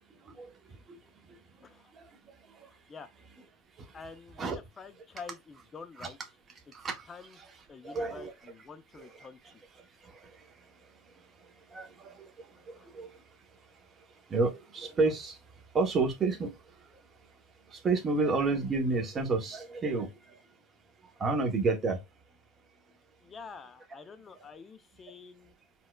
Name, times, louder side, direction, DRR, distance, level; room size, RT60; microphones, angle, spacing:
voice 1, 0.2-0.5 0.9-1.0 1.9-2.1 2.5-2.7 3.8-3.9 4.4-4.6 6.0-6.1 6.7-7.1 7.8-8.3 9.0-9.3 10.0-10.4 11.7-13.2 14.3-15.4 15.7-16.5 16.9-17.0 17.7-20.4 21.2-22.0, right 3 dB, 25° right, 0.8 m, -30 dB
voice 2, 2.7-3.1 3.9-6.2 7.1-7.4 7.7-9.6 12.8-12.9 23.2-25.5, left 5 dB, 25° left, 0.5 m, -48 dB
4.2 x 2.3 x 2.2 m
supercardioid pair, 115°, 0 cm